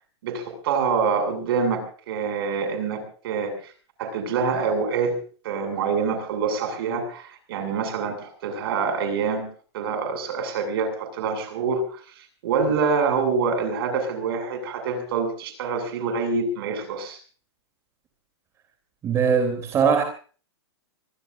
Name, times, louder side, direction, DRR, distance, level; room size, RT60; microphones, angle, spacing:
voice 1, 0.2-3.5 4.0-5.2 5.4-9.5 9.7-12.0 12.4-17.2, right 5 dB, 55° right, 7.2 m, -26 dB
voice 2, 19.0-20.0, right 6 dB, 20° right, 3.4 m, -20 dB
25.5 x 19.5 x 2.7 m
hypercardioid pair, 150°, 15 cm